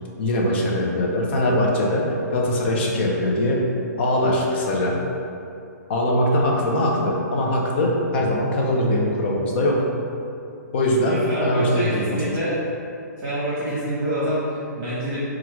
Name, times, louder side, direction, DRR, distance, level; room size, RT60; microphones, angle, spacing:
voice 1, 0.2-3.7 4.0-5.0 5.9-9.8 10.7-12.4, left 1 dB, 35° left, -2 dB, 0.6 m, -21 dB
voice 2, 11.0-12.6 13.2-15.2, right 1 dB, 20° right, -11 dB, 1.0 m, -26 dB
4.6 x 2.4 x 3.0 m, 2.6 s
hypercardioid pair, 165°, 10 cm